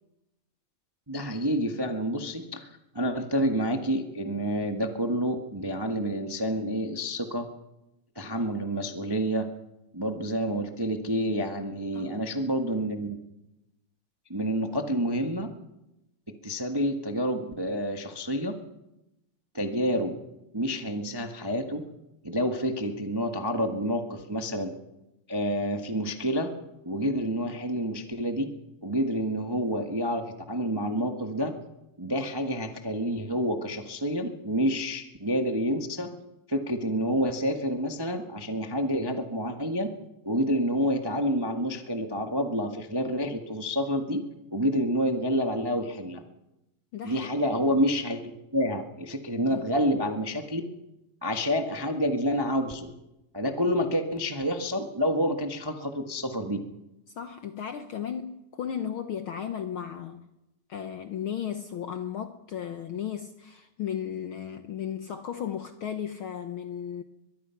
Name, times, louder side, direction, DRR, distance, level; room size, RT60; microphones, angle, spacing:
voice 1, 1.1-7.5 8.1-9.5 9.9-13.2 14.3-15.5 16.3-18.5 19.5-20.1 20.5-21.8 22.2-24.7 25.3-26.5 26.8-28.5 28.8-31.5 32.0-36.2 36.5-39.9 40.2-44.2 44.5-46.2 47.0-50.6 51.2-52.9 53.3-56.6, equal, 20° right, 5 dB, 0.7 m, -28 dB
voice 2, 46.9-47.4 49.5-49.7 57.2-60.3 60.7-67.0, left 9 dB, 65° left, 9 dB, 1.3 m, -35 dB
22.5 x 22.5 x 5.9 m, 0.93 s
omnidirectional pair, 3.4 m